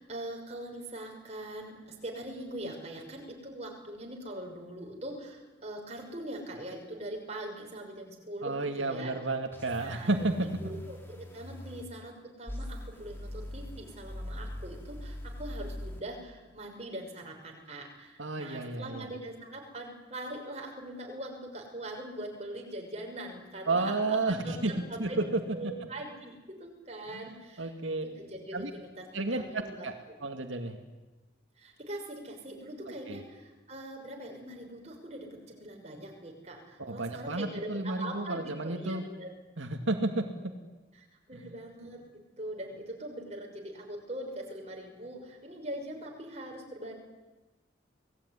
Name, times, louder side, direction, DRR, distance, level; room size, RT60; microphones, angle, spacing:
voice 1, 0.0-9.1 9.8-10.1 10.4-27.7 28.0-29.9 31.6-39.3 40.9-46.9, right 1 dB, 35° right, 1 dB, 6.1 m, -42 dB
voice 2, 8.4-10.5 18.2-19.1 23.7-24.7 25.0-25.2 27.1-27.3 27.6-28.0 28.5-28.7 29.1-29.9 30.2-30.8 33.1-33.2 36.8-39.0 39.6-40.3 41.3-41.5, right 2 dB, 85° right, 4 dB, 2.3 m, -31 dB
sound 1, 9.5-11.8 12.5-16.0, left 1 dB, 10° left, 3.9 m, -41 dB
28.5 x 19.5 x 9.9 m, 1.2 s
head